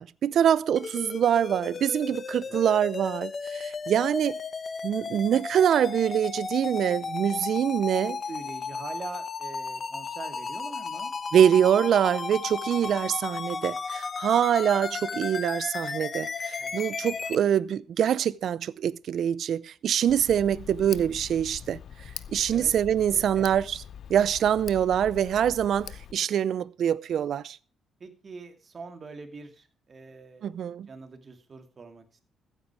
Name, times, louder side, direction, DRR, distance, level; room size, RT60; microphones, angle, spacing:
voice 1, 0.0-4.4 4.8-8.2 11.3-21.8 22.3-23.8 24.1-27.6 30.4-30.9, right 9 dB, 65° right, 0.6 m, -24 dB
sound 1, 0.8-17.4, left 5 dB, 40° left, 1.0 m, -34 dB
voice 2, 2.3-2.7 8.1-11.1 16.6-16.7 17.0-17.1 22.5-22.7 23.1-23.5 28.0-30.5 30.9-32.2, right 4 dB, 40° right, 2.5 m, -44 dB
Tick, 20.1-26.1, left 8 dB, 65° left, 0.7 m, -43 dB
15.0 x 9.2 x 4.8 m
cardioid pair, 90°, 0 cm